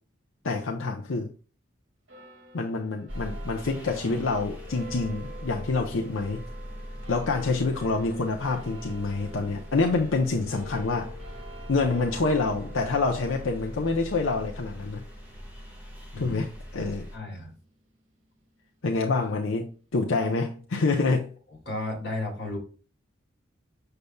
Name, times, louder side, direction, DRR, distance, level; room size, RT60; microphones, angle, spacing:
voice 1, 0.4-1.3 2.5-6.4 7.1-11.1 11.7-15.0 16.2-17.1 18.8-21.3, left 3 dB, 85° left, 0.7 m, -27 dB
sound 1, 2.1-18.8, right 1 dB, 65° right, 1.9 m, -48 dB
sound 2, 3.1-17.2, equal, 10° right, 1.4 m, -41 dB
voice 2, 17.1-17.5 21.7-22.6, left 2 dB, 55° left, 2.3 m, -33 dB
6.8 x 6.6 x 2.3 m
head